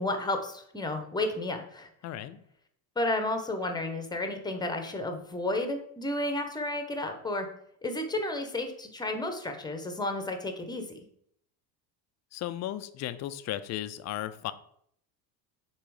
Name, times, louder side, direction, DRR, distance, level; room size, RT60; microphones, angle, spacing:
voice 1, 0.0-1.9 3.0-7.5 7.8-10.8, left 2 dB, 10° left, 6 dB, 0.9 m, -32 dB
voice 2, 2.0-2.4 12.3-14.5, left 12 dB, 40° left, 13 dB, 0.4 m, -35 dB
6.6 x 3.1 x 4.8 m, 0.68 s
supercardioid pair, 110°, 47 cm